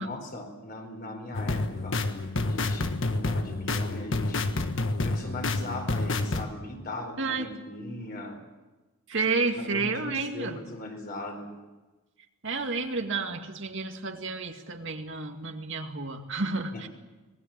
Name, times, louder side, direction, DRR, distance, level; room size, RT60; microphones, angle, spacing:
voice 1, 0.0-2.0 2.4-4.5 5.0-8.4 9.5-11.5 16.7-16.9, left 1 dB, 40° left, 3 dB, 4.6 m, -39 dB
sound 1, 1.3-6.4, left 2 dB, 60° left, 1.5 m, -29 dB
voice 2, 9.1-10.6 12.4-16.9, right 3 dB, 55° right, 4 dB, 2.2 m, -30 dB
25.5 x 20.0 x 7.5 m, 1.2 s
head